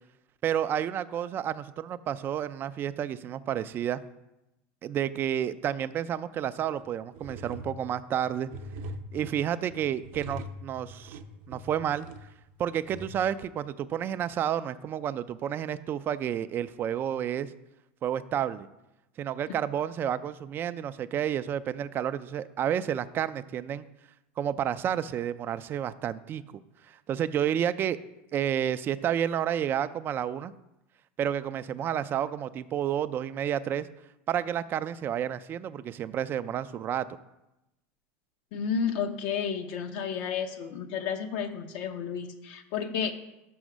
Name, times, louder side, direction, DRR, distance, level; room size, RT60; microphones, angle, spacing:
voice 1, 0.4-4.0 4.8-8.5 9.1-11.2 11.5-12.1 12.6-17.5 18.0-18.7 19.2-23.8 24.4-26.6 26.9-28.0 28.3-30.5 31.2-33.9 34.3-37.1, right 9 dB, 30° right, 14 dB, 0.3 m, -30 dB
sound 1, 6.7-6.8 7.1-13.1, right 1 dB, 60° right, 0.6 m, -42 dB
voice 2, 38.5-43.1, left 7 dB, 60° left, 6 dB, 0.8 m, -31 dB
6.3 x 5.7 x 6.2 m, 0.93 s
supercardioid pair, 135°, 7 cm